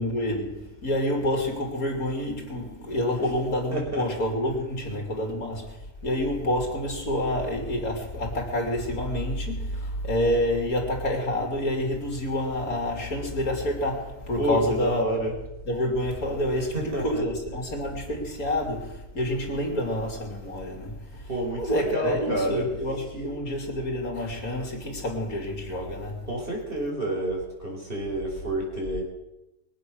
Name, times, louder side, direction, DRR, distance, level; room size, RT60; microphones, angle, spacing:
voice 1, 0.0-15.3 15.7-21.3 21.6-26.2, left 1 dB, 70° left, 3.7 m, -28 dB
voice 2, 2.8-3.2 3.7-4.0 14.4-15.4 16.7-17.2 21.3-22.6 26.3-29.0, right 1 dB, 35° right, 4.9 m, -29 dB
23.0 x 8.5 x 6.5 m
omnidirectional pair, 1.6 m